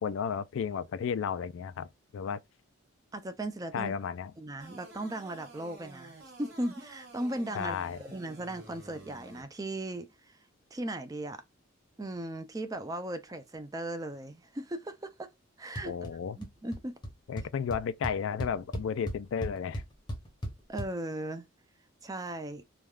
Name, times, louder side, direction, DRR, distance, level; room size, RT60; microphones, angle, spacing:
voice 1, 0.0-2.4 3.7-4.3 7.5-8.0 15.8-16.4 17.3-19.8, left 7 dB, 65° left, 0.3 m, -33 dB
voice 2, 3.1-3.9 4.4-10.4 10.7-11.4 12.0-15.3 15.6-15.9 16.3-16.9 20.7-21.5 22.0-22.6, right 1 dB, 15° right, 0.4 m, -37 dB
sound 1, 4.6-9.4, right 2 dB, 50° right, 1.5 m, -51 dB
sound 2, 15.8-16.1 16.4-16.8 17.0-17.1 17.4-20.9, equal, 20° left, 0.7 m, -36 dB
3.3 x 2.3 x 2.3 m
head